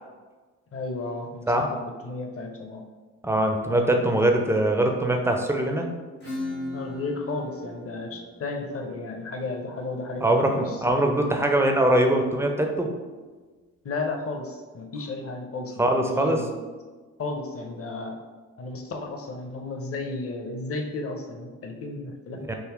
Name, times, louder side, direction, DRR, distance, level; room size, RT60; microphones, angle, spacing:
voice 1, 0.7-2.8 6.7-10.8 13.8-16.6 17.2-18.2 18.6-22.6, left 3 dB, 35° left, 4 dB, 0.7 m, -33 dB
voice 2, 3.2-5.9 10.2-12.9 15.8-16.4 22.5-22.6, right 1 dB, 5° right, 3 dB, 0.4 m, -22 dB
Acoustic guitar / Strum, 6.2-11.6, left 2 dB, 85° left, 1.4 m, -39 dB
3.9 x 2.7 x 3.1 m, 1.3 s
figure-of-eight pair, 40°, 41 cm